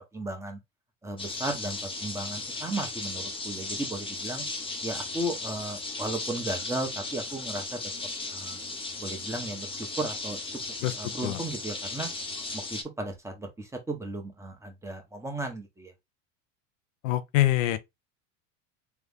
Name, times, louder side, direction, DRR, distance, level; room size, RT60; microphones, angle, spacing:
voice 1, 0.1-0.6 1.0-4.4 4.8-7.8 8.3-8.6 9.0-10.4 11.0-12.1 12.5-15.9, right 2 dB, 5° right, 1.3 m, -35 dB
sound 1, 1.2-12.8, left 3 dB, 15° left, 0.8 m, -36 dB
voice 2, 17.0-17.8, left 15 dB, 85° left, 0.8 m, -24 dB
3.5 x 3.4 x 3.5 m
supercardioid pair, 120°, 38 cm